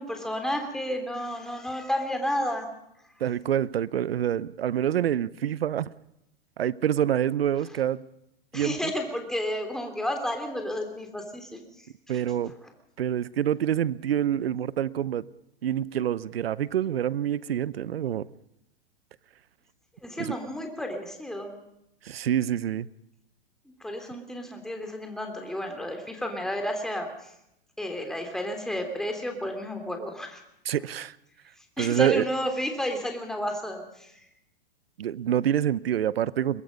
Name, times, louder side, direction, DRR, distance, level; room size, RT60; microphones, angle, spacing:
voice 1, 0.0-2.7 8.5-11.6 12.6-12.7 20.0-21.6 23.8-27.3 27.8-30.4 31.8-34.2, equal, ahead, 3.3 m, -32 dB
voice 2, 3.2-5.9 6.6-8.0 8.5-8.8 12.1-12.5 13.0-15.2 15.6-18.3 20.2-20.4 22.0-22.9 30.7-31.1 31.8-32.2 35.0-36.6, right 10 dB, 75° right, 0.9 m, -26 dB
22.5 x 22.0 x 5.3 m
hypercardioid pair, 115°, 30 cm